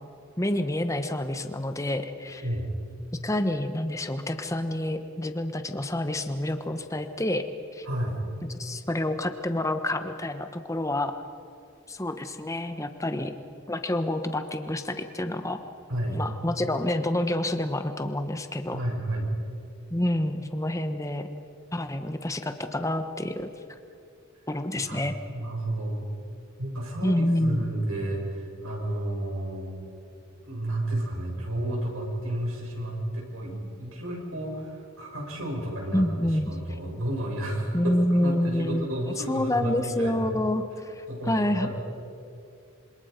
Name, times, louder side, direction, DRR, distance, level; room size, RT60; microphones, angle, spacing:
voice 1, 0.4-2.4 3.2-7.5 7.7-7.9 8.5-11.1 11.9-13.4 13.7-15.6 16.1-18.8 19.9-21.3 21.7-23.5 24.5-25.1 27.0-27.6 35.9-36.5 37.7-38.9 39.3-41.7, left 1 dB, 15° left, 8 dB, 1.1 m, -28 dB
voice 2, 7.8-8.2 15.9-16.2 18.7-19.3 24.8-26.1 26.6-29.7 30.4-40.2 41.1-41.7, right 1 dB, 75° right, -1 dB, 6.7 m, -32 dB
27.0 x 26.0 x 5.2 m, 2.5 s
head